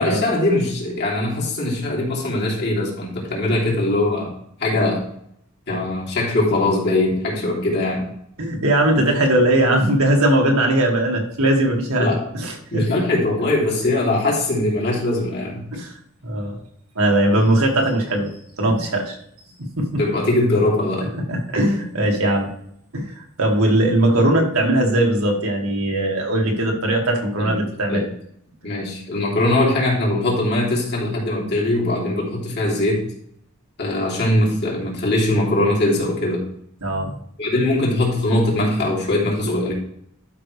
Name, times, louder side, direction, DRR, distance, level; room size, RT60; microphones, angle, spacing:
voice 1, 0.0-4.3 4.6-5.1 5.7-8.1 12.0-12.2 12.7-15.6 20.0-21.1 27.4-27.5 27.9-28.0 28.6-33.0 33.8-36.4 37.4-39.7, left 1 dB, 55° left, -4 dB, 3.2 m, -21 dB
voice 2, 8.4-12.9 15.7-15.9 16.2-16.6 17.0-18.3 18.6-19.2 19.8-20.0 21.1-22.5 22.9-28.0 36.8-37.1, right 1 dB, 75° right, 1 dB, 2.1 m, -19 dB
12.0 x 5.6 x 3.3 m, 0.69 s
head